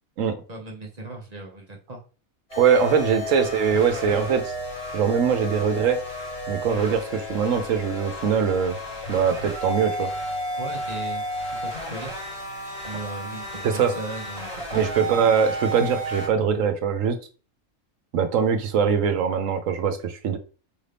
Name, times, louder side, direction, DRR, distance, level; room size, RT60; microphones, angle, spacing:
voice 1, 0.5-2.0 3.1-3.4 10.6-11.2 11.6-12.1 12.8-15.2, right 2 dB, 35° right, 0 dB, 0.8 m, -37 dB
sound 1, 2.5-16.3, equal, 85° left, 3.2 m, -33 dB
voice 2, 2.6-4.5 4.9-6.0 6.5-8.8 9.1-10.1 13.6-13.9 14.7-17.2 18.1-20.4, right 6 dB, 75° right, 8 dB, 1.1 m, -22 dB
4.9 x 2.6 x 3.4 m, 0.35 s
omnidirectional pair, 1.4 m